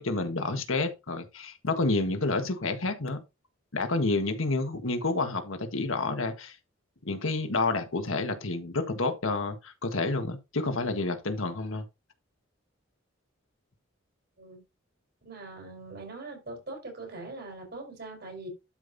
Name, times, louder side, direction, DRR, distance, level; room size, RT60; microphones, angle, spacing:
voice 1, 0.0-3.2 3.7-6.6 7.0-11.8, left 3 dB, 85° left, 1.6 m, -29 dB
voice 2, 15.2-18.5, right 2 dB, 55° right, 4.7 m, -42 dB
12.0 x 5.2 x 2.8 m
head